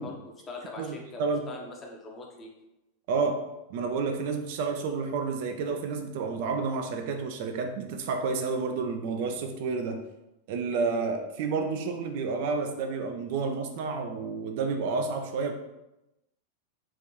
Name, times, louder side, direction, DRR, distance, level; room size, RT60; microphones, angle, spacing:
voice 1, 0.0-2.5, left 3 dB, 25° left, 0 dB, 0.7 m, -42 dB
voice 2, 0.8-1.5 3.1-3.4 3.7-10.0 10.5-15.5, right 4 dB, 50° right, 5 dB, 0.3 m, -30 dB
3.7 x 2.5 x 3.0 m, 0.93 s
figure-of-eight pair, 90°, 0 cm